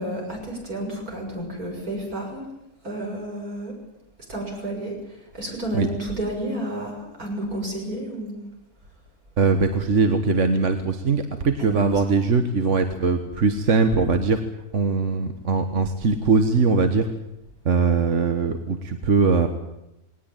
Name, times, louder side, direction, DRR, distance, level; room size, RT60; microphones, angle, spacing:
voice 1, 0.0-2.4 2.8-3.7 4.3-8.4 11.6-12.0, right 1 dB, 70° right, 1 dB, 7.2 m, -31 dB
voice 2, 9.4-14.4 14.7-17.1 17.6-19.5, right 4 dB, 55° right, 7 dB, 1.6 m, -21 dB
20.0 x 18.5 x 9.1 m, 0.89 s
omnidirectional pair, 1.6 m